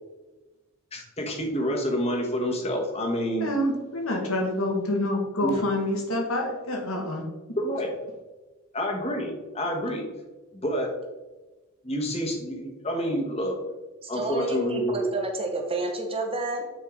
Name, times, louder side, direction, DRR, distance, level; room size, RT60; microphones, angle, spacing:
voice 1, 0.9-3.5 5.4-5.6 7.6-7.9 8.7-10.1 10.6-10.9 11.8-13.6 14.1-15.0, equal, 30° left, 1 dB, 1.3 m, -28 dB
voice 2, 3.4-7.2, left 1 dB, 75° left, 1 dB, 1.6 m, -27 dB
voice 3, 14.0-16.7, right 2 dB, 25° right, 2 dB, 1.2 m, -30 dB
8.8 x 4.7 x 3.7 m, 1.2 s
head